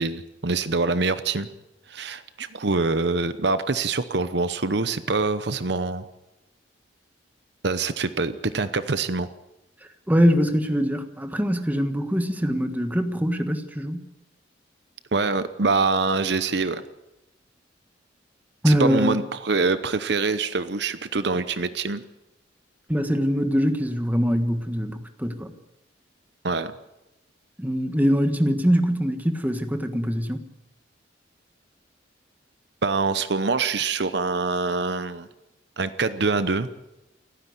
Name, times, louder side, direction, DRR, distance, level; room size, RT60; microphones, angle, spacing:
voice 1, 0.0-1.5 1.9-6.1 7.6-9.3 15.1-16.8 18.6-22.0 26.4-26.7 32.8-35.3 35.8-36.7, right 3 dB, 60° right, 12 dB, 0.9 m, -25 dB
voice 2, 10.1-14.0 18.6-19.2 22.9-25.5 27.6-30.4, equal, 10° right, 7 dB, 1.4 m, -23 dB
29.0 x 10.0 x 9.5 m, 0.96 s
head